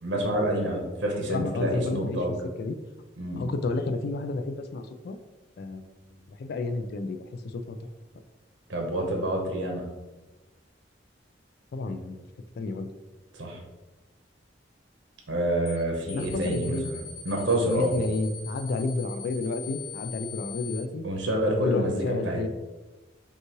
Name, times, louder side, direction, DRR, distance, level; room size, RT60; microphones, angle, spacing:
voice 1, 0.0-2.3 3.2-3.5 8.7-9.8 13.3-13.6 15.3-17.0 17.2-17.9 21.0-22.4, right 1 dB, 80° right, 1 dB, 0.9 m, -28 dB
voice 2, 1.3-2.2 2.6-2.8 3.4-5.2 5.6-5.9 6.3-7.8 11.7-12.2 12.6-12.9 16.1-16.9 17.6-21.1 21.6-22.5, left 3 dB, 60° left, 8 dB, 0.4 m, -30 dB
sound 1, 15.7-15.8 16.1-20.8, left 7 dB, 85° left, 1.1 m, -41 dB
5.3 x 2.4 x 3.0 m, 1.2 s
head